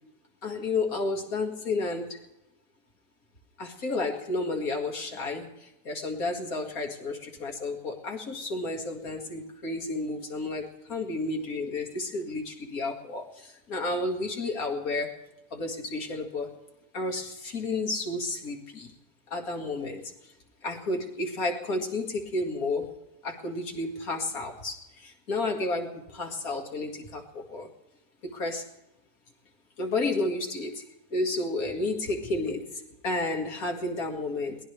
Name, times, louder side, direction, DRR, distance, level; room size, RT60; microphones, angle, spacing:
voice 1, 0.4-2.2 3.6-15.2 15.5-16.6 16.9-18.9 19.3-20.3 20.6-23.0 23.2-27.7 28.2-28.7 29.8-30.9 31.1-34.6, left 2 dB, 65° left, 2 dB, 2.5 m, -31 dB
22.5 x 18.5 x 3.4 m, 0.91 s
omnidirectional pair, 1.6 m